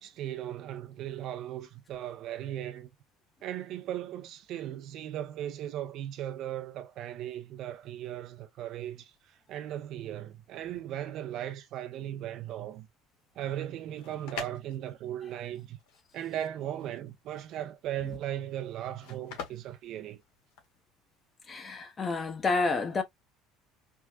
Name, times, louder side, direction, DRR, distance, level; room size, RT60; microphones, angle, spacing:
voice 1, 0.0-2.9 3.4-12.9 13.4-15.8 16.1-20.2, right 11 dB, 60° right, 0.6 m, -37 dB
sound 1, 13.7-20.8, left 6 dB, 75° left, 1.1 m, -45 dB
voice 2, 21.5-23.0, left 3 dB, 30° left, 0.8 m, -29 dB
4.5 x 2.1 x 2.3 m
supercardioid pair, 95°, 0 cm